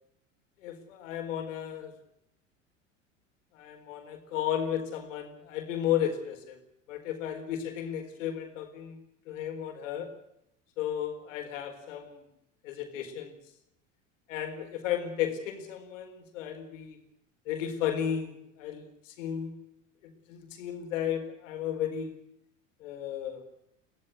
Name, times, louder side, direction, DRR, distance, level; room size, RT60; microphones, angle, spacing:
voice 1, 0.6-1.9 3.5-6.6 6.9-9.0 9.3-10.1 10.8-12.2 12.6-13.4 14.3-17.0 17.5-19.5 20.0-22.1 22.8-23.4, left 9 dB, 75° left, 5 dB, 4.3 m, -34 dB
23.0 x 16.0 x 8.0 m, 0.80 s
hypercardioid pair, 80°, 39 cm